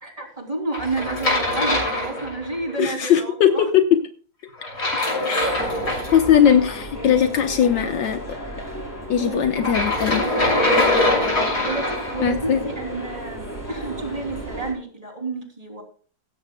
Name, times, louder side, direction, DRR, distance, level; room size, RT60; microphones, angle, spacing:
voice 1, 0.0-3.7 4.8-4.9 9.2-9.9 11.6-15.8, right 3 dB, 20° right, 2 dB, 3.3 m, -30 dB
sound 1, 0.7-2.7 4.6-6.5 9.6-12.2, left 2 dB, 55° left, 7.2 m, -23 dB
voice 2, 2.8-3.8 5.3-5.4 6.1-8.2 9.1-10.3 12.2-12.6, left 9 dB, 75° left, 6 dB, 1.8 m, -19 dB
sound 2, 5.6-14.7, equal, 10° left, 5.2 m, -35 dB
16.0 x 14.5 x 2.3 m, 0.42 s
omnidirectional pair, 2.0 m